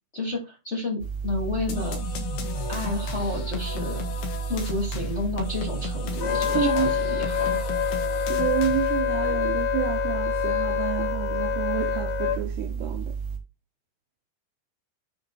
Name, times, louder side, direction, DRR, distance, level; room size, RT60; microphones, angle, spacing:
voice 1, 0.1-2.0 2.7-4.0 4.5-7.6, left 2 dB, 20° left, 2.5 m, -31 dB
sound 1, 1.0-13.4, right 6 dB, 45° right, 2.7 m, -32 dB
sound 2, 1.7-9.1, left 7 dB, 65° left, 3.3 m, -36 dB
Wind instrument woodwind instrument, 6.2-12.4, left 11 dB, 90° left, 1.8 m, -27 dB
voice 2, 6.5-6.9 7.9-8.0 8.3-13.2, right 11 dB, 80° right, 2.5 m, -29 dB
9.9 x 3.7 x 4.3 m
omnidirectional pair, 5.2 m